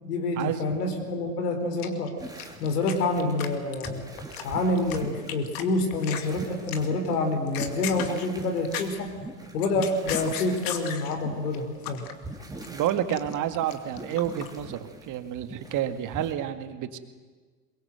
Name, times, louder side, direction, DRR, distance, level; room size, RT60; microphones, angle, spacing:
voice 1, 0.0-2.1 2.6-4.1 4.4-9.1 9.5-12.0, left 2 dB, 70° left, 5 dB, 4.3 m, -27 dB
sound 1, 1.8-2.9 3.2-3.5 3.7-5.0 5.3-5.6 5.9-6.3 6.7-7.0 7.4-9.1 9.4-11.2 11.5-12.1 12.4-14.5, left 10 dB, 45° left, 2.4 m, -35 dB
sound 2, 2.2-16.3, right 2 dB, 10° right, 3.2 m, -42 dB
voice 2, 12.7-17.0, right 10 dB, 40° right, 9 dB, 2.0 m, -29 dB
23.0 x 22.0 x 7.9 m, 1.4 s
hypercardioid pair, 90°, 48 cm